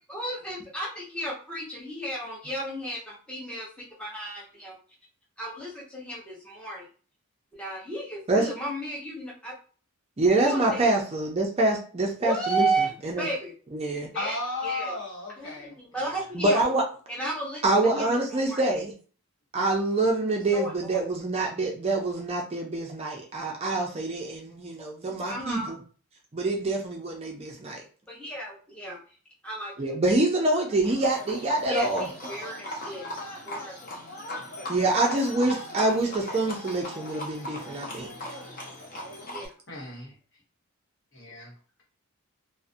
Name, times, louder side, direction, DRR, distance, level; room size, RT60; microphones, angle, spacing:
voice 1, 0.1-3.7 4.0-4.7 5.4-6.8 7.5-9.5 10.4-10.9 12.2-12.9 13.2-13.5 14.1-14.3 14.6-14.9 15.4-16.7 17.1-17.6 17.9-18.6 20.5-21.0 25.3-25.7 28.1-29.0 29.4-29.7 31.7-33.0 33.4-33.8 39.3-39.5, right 1 dB, 5° left, -5 dB, 0.8 m, -33 dB
voice 2, 10.2-13.3 13.7-14.1 16.3-16.8 17.6-18.9 19.5-25.8 26.3-27.8 29.8-32.1 34.7-38.1, right 2 dB, 25° right, 0 dB, 0.4 m, -26 dB
voice 3, 14.1-16.3 39.7-40.1 41.1-41.5, left 3 dB, 55° left, -2 dB, 1.0 m, -35 dB
Livestock farm animals working animals, 30.8-39.5, left 1 dB, 40° left, 0.6 m, -38 dB
2.4 x 2.0 x 2.5 m, 0.40 s
head